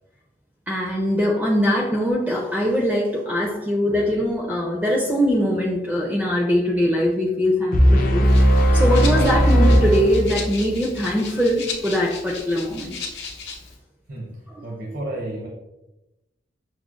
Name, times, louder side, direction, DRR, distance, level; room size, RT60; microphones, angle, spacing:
voice 1, 0.7-8.3 8.7-12.9 14.5-14.6, equal, 10° right, -2 dB, 0.4 m, -22 dB
sound 1, 7.7-10.7, equal, 50° left, 0.4 m, -17 dB
Rattle (instrument), 8.2-13.8, left 5 dB, 80° left, 0.7 m, -36 dB
voice 2, 14.6-15.5, right 1 dB, 75° right, -3 dB, 0.8 m, -31 dB
6.0 x 2.1 x 2.4 m, 0.96 s
head